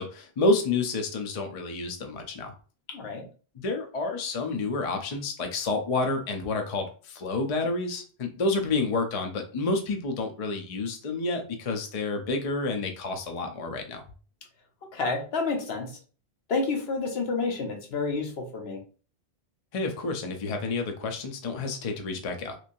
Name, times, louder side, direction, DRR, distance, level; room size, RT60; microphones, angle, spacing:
voice 1, 0.0-2.5 3.5-14.0 19.7-22.6, left 3 dB, 45° left, 4 dB, 0.5 m, -29 dB
voice 2, 2.9-3.3 14.9-16.0 16.5-18.8, left 4 dB, 70° left, 3 dB, 1.0 m, -29 dB
3.1 x 2.5 x 2.6 m, 0.38 s
omnidirectional pair, 1.1 m